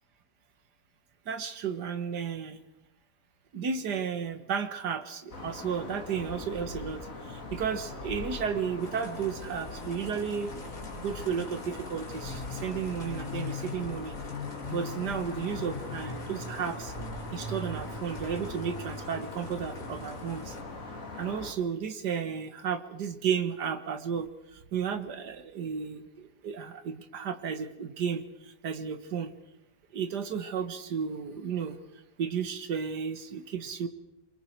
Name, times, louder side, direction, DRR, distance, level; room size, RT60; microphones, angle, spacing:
voice 1, 1.3-2.6 3.5-7.0 7.5-10.5 11.0-14.1 14.7-16.9 17.3-20.4 21.2-24.3 24.7-28.2 28.6-29.3 29.9-31.8 32.2-33.9, right 7 dB, 80° right, 9 dB, 2.0 m, -33 dB
sound 1, 5.3-21.5, left 3 dB, 55° left, 2.4 m, -39 dB
sound 2, 8.8-20.6, left 2 dB, 75° left, 3.9 m, -51 dB
27.0 x 23.5 x 4.6 m, 0.91 s
omnidirectional pair, 1.7 m